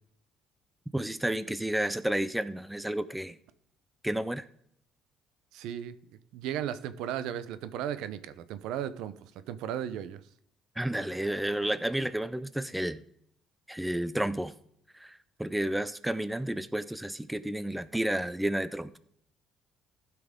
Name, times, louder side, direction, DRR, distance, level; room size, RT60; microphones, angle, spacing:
voice 1, 0.9-3.4 4.0-4.5 10.8-13.0 13.7-14.5 14.9-19.0, right 1 dB, 5° right, 14 dB, 0.5 m, -31 dB
voice 2, 5.5-6.0 6.3-9.1 9.5-10.2, right 10 dB, 85° right, 14 dB, 0.6 m, -35 dB
15.5 x 5.9 x 3.7 m, 0.69 s
cardioid pair, 110°, 0 cm